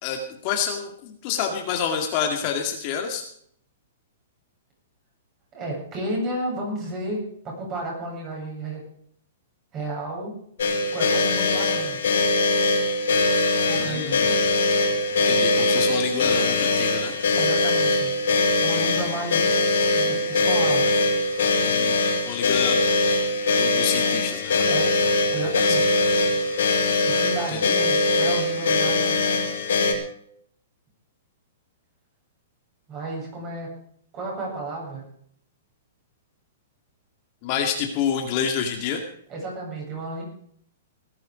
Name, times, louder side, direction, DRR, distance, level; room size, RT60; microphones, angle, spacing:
voice 1, 0.0-3.2 13.8-14.4 15.1-17.1 21.6-22.8 23.6-24.7 25.6-25.8 27.5-27.7 37.4-39.0, left 7 dB, 35° left, 3 dB, 2.2 m, -28 dB
voice 2, 5.5-8.8 9.7-10.4 10.9-12.0 13.7-14.2 17.3-18.1 18.6-20.9 24.7-24.9 25.3-25.8 27.1-29.4 32.9-33.7 34.1-35.0 39.3-40.2, right 1 dB, 25° right, -1 dB, 7.8 m, -32 dB
sound 1, 10.6-29.9, left 2 dB, 80° left, 5.2 m, -22 dB
18.5 x 10.5 x 5.1 m, 0.65 s
hypercardioid pair, 155°, 0 cm